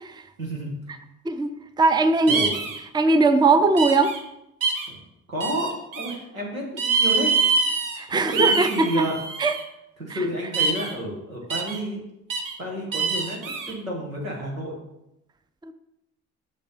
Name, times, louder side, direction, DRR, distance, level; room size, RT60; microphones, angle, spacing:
voice 1, 0.4-0.7 2.3-2.6 4.9-5.0 5.3-7.5 8.1-9.2 10.0-12.0 12.6-13.4 13.7-14.8, equal, 90° right, -1 dB, 1.4 m, -30 dB
voice 2, 1.3-2.4 2.9-4.1 8.0-9.1 9.4-9.5 10.1-10.2 15.6-15.7, right 3 dB, 10° right, 10 dB, 0.6 m, -20 dB
sound 1, 2.3-2.8 3.8-4.2 4.6-4.9 5.4-6.1 6.8-8.0 8.3-9.6 10.5-10.9 11.5-11.8 12.3-12.5 12.9-13.7, right 4 dB, 55° right, 1.3 m, -25 dB
7.2 x 6.7 x 4.0 m, 0.83 s
figure-of-eight pair, 45°, 40 cm